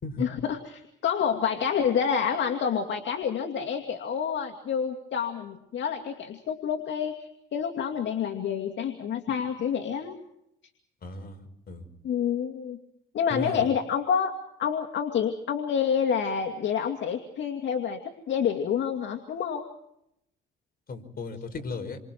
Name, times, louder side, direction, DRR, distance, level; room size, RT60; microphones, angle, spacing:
voice 1, 0.2-10.2 12.0-12.8 13.1-19.7, left 7 dB, 65° left, 3 dB, 2.4 m, -28 dB
voice 2, 11.0-11.4 11.7-11.8 13.3-13.7 20.9-22.0, left 3 dB, 50° left, 7 dB, 5.5 m, -36 dB
29.0 x 25.5 x 4.6 m, 0.78 s
cardioid pair, 90°, 20 cm